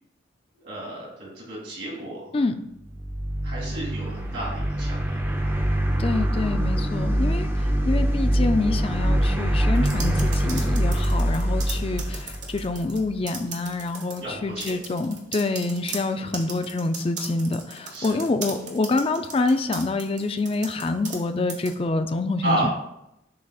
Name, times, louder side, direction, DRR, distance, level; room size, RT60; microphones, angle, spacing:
voice 1, 0.6-2.3 3.4-5.6 14.2-14.7 16.2-16.5 17.9-18.2 22.4-22.7, right 1 dB, 70° right, -4 dB, 2.4 m, -32 dB
sound 1, 2.9-13.1, right 1 dB, 10° right, 0.6 m, -24 dB
voice 2, 6.0-22.7, left 3 dB, 30° left, 8 dB, 0.4 m, -26 dB
sound 2, 9.8-13.0 13.3-14.2 14.6-21.2 21.5-21.7, right 4 dB, 40° right, 1.1 m, -37 dB
10.5 x 4.0 x 2.4 m, 0.83 s
head